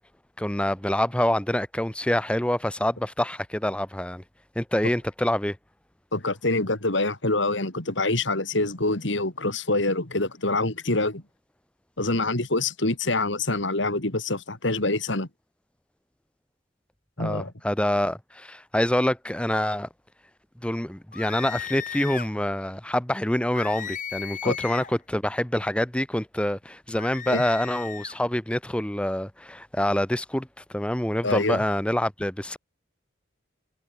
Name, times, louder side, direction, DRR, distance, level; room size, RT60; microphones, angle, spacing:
voice 1, 0.4-4.2 4.6-5.6 17.2-19.9 20.6-32.6, left 1 dB, 5° left, 0.8 m, -26 dB
voice 2, 6.1-11.2 12.0-15.3 17.2-17.5 24.4-24.6 27.3-27.4 31.2-31.6, left 2 dB, 70° left, 3.2 m, -25 dB
sound 1, 21.1-22.3 23.5-25.0 26.9-28.2, left 9 dB, 40° left, 4.5 m, -36 dB
head